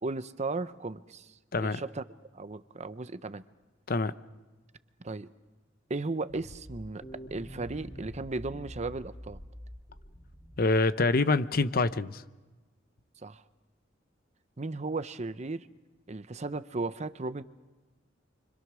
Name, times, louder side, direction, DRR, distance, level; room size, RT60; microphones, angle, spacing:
voice 1, 0.0-2.0 2.3-3.4 5.0-5.3 5.9-7.0 7.3-9.4 13.2-13.4 14.6-15.7 16.1-17.4, right 3 dB, 35° right, 0.7 m, -35 dB
sound 1, 6.3-11.0, equal, 25° left, 2.8 m, -46 dB
voice 2, 10.6-12.2, left 3 dB, 50° left, 0.8 m, -26 dB
29.5 x 25.5 x 6.2 m
head